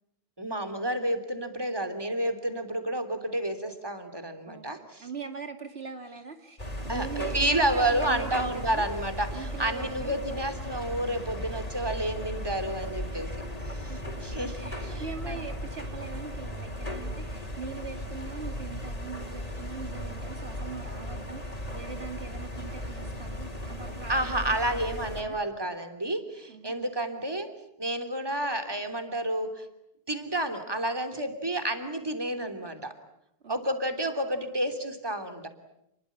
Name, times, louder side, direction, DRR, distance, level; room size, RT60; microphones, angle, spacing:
voice 1, 0.4-5.1 6.9-7.1 7.3-13.3 13.7-13.9 14.2-15.4 24.1-27.5 27.8-29.7 30.1-32.9 33.5-35.5, right 1 dB, 20° right, 7 dB, 3.2 m, -30 dB
voice 2, 4.5-8.9 9.3-10.1 13.6-25.4 26.5-26.7 33.4-33.5, right 5 dB, 75° right, 6 dB, 2.5 m, -41 dB
sound 1, 6.6-25.2, equal, 35° left, 4.2 m, -36 dB
30.0 x 22.5 x 8.6 m, 0.82 s
omnidirectional pair, 1.1 m